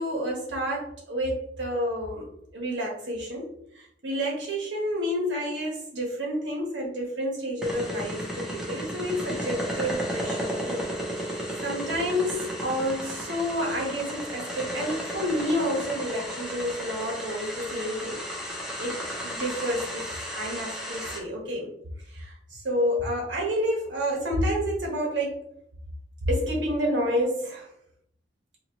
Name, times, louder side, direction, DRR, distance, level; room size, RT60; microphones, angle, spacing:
voice 1, 0.0-10.9 11.6-21.7 22.1-25.5 26.3-27.7, equal, 80° right, -1 dB, 1.2 m, -29 dB
sound 1, 7.6-21.2, equal, 5° right, 0.9 m, -34 dB
4.3 x 2.8 x 2.9 m, 0.73 s
head